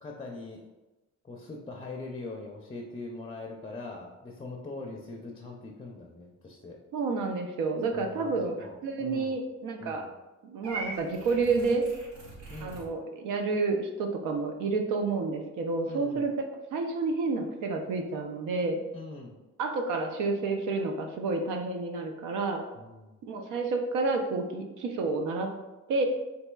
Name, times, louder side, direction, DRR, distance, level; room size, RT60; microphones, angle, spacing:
voice 1, 0.0-0.6 1.2-6.8 7.9-9.4 9.8-10.1 12.5-12.9 15.8-16.3 18.9-19.4 22.7-23.2, left 3 dB, 20° left, 0 dB, 0.5 m, -42 dB
voice 2, 6.9-10.1 10.4-11.9 12.6-16.3 16.7-18.8 19.6-22.6 23.2-25.5 25.9-26.0, right 3 dB, 90° right, 4 dB, 0.6 m, -30 dB
Purr / Meow, 10.6-12.9, right 2 dB, 65° right, 1.1 m, -41 dB
4.2 x 2.7 x 2.2 m, 1.1 s
cardioid pair, 90°, 30 cm